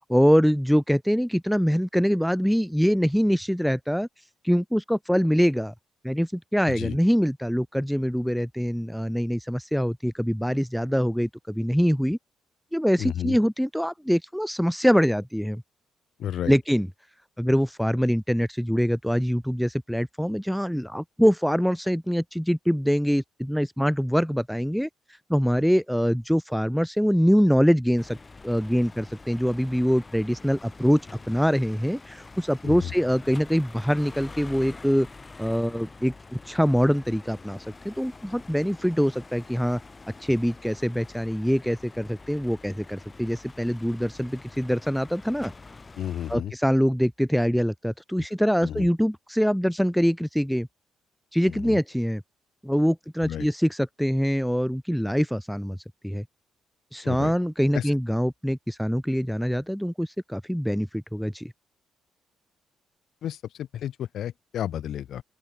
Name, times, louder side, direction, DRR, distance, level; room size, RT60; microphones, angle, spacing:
voice 1, 0.1-4.1 4.4-5.7 6.0-12.2 12.7-15.6 16.5-16.9 17.4-24.9 25.3-28.2 28.4-31.0 31.3-35.1 35.4-36.1 36.5-37.6 37.8-39.8 40.2-45.5 46.3-50.7 51.3-52.2 52.6-55.8 56.0-56.2 56.9-61.5, equal, ahead, 0.5 m, -24 dB
voice 2, 6.7-7.0 13.0-13.4 16.2-16.6 32.6-32.9 46.0-46.5 48.6-48.9 51.5-51.8 53.2-53.5 57.0-57.3 57.7-57.9 63.2-65.2, left 10 dB, 70° left, 1.2 m, -32 dB
sound 1, 28.0-46.4, left 3 dB, 25° left, 5.9 m, -46 dB
open air
cardioid pair, 90°, 0 cm